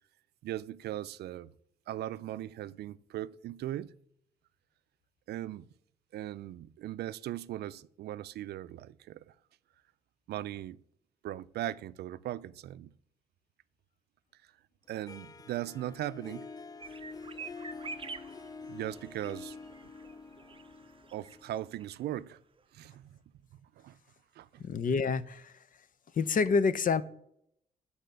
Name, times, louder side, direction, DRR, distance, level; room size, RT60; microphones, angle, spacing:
voice 1, 0.4-1.5 1.9-4.0 5.3-5.7 6.1-9.3 10.3-10.8 11.2-12.9 14.9-16.5 18.7-19.6 21.1-22.4 22.7-23.1 23.6-24.0 24.3-24.6, right 13 dB, 80° right, 0.4 m, -39 dB
Harp, 15.1-22.0, left 4 dB, 25° left, 0.4 m, -47 dB
sound 1, 16.8-22.0 22.2-22.3 22.6-22.7, right 4 dB, 30° right, 0.6 m, -47 dB
voice 2, 24.6-25.5 26.2-27.0, left 5 dB, 55° left, 0.7 m, -27 dB
11.0 x 4.2 x 6.8 m
cardioid pair, 75°, 17 cm